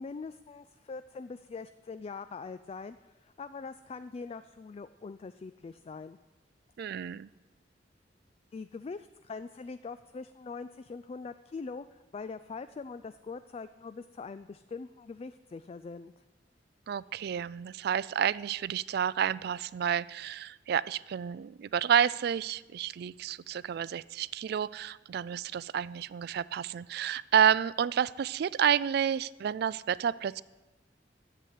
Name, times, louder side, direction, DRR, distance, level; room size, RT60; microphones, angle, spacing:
voice 1, 0.0-6.2 8.5-16.1, left 4 dB, 35° left, 12 dB, 0.3 m, -42 dB
voice 2, 6.8-7.3 16.9-30.4, right 8 dB, 60° right, 20 dB, 0.3 m, -30 dB
11.0 x 7.9 x 8.4 m, 1.2 s
head